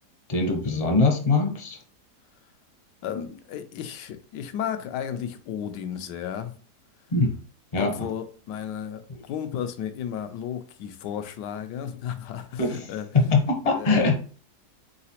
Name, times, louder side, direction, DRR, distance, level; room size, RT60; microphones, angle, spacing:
voice 1, 0.3-1.8 7.1-7.4 7.7-7.9 12.6-12.8 13.1-14.2, left 3 dB, 35° left, 0.6 m, -22 dB
voice 2, 3.0-6.5 7.8-13.1 13.7-14.0, left 9 dB, 85° left, 1.2 m, -33 dB
4.0 x 3.8 x 2.9 m
omnidirectional pair, 1.8 m